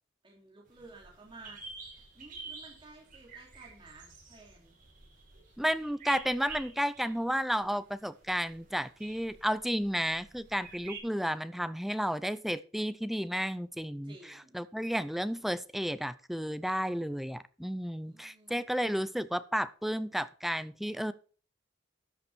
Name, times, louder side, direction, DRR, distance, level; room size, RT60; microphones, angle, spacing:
voice 1, 0.2-1.6 2.1-4.7 14.1-14.6 18.0-18.8, right 2 dB, 25° right, -2 dB, 3.1 m, -54 dB
sound 1, 0.7-11.0, right 4 dB, 45° right, 5.7 m, -49 dB
voice 2, 5.6-21.1, equal, ahead, 14 dB, 0.5 m, -32 dB
13.0 x 7.2 x 4.4 m, 0.40 s
head